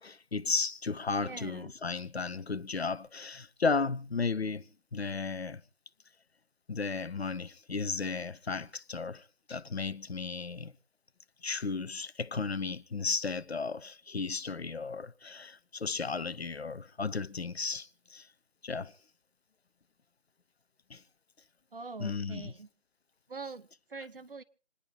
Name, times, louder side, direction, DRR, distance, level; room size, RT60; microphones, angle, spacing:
voice 1, 0.0-4.6 4.9-5.6 6.7-10.7 11.4-18.3 18.6-18.9 20.9-21.0 22.0-22.5, left 4 dB, 60° left, 0.8 m, -34 dB
voice 2, 1.2-1.7 21.7-22.7 23.3-24.4, right 4 dB, 50° right, 1.0 m, -44 dB
27.0 x 10.0 x 4.0 m
figure-of-eight pair, 155°, 35 cm